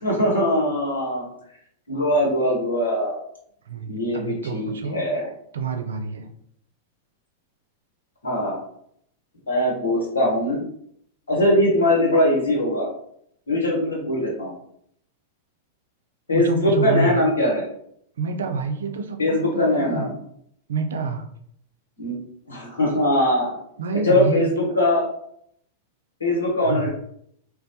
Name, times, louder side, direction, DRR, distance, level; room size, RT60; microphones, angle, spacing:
voice 1, 0.0-1.3 1.9-3.1 3.9-5.3 8.2-8.6 9.5-10.6 11.3-12.9 13.5-14.5 16.3-17.6 19.2-20.1 22.0-22.1 22.5-23.6 24.0-25.0 26.2-26.9, left 1 dB, 85° left, -3 dB, 1.1 m, -21 dB
voice 2, 3.7-5.0 5.5-6.3 16.3-17.3 18.2-20.2 20.7-21.2 23.8-24.7 26.6-26.9, right 3 dB, 80° right, 6 dB, 0.3 m, -27 dB
2.1 x 2.1 x 2.7 m, 0.69 s
hypercardioid pair, 105°, 0 cm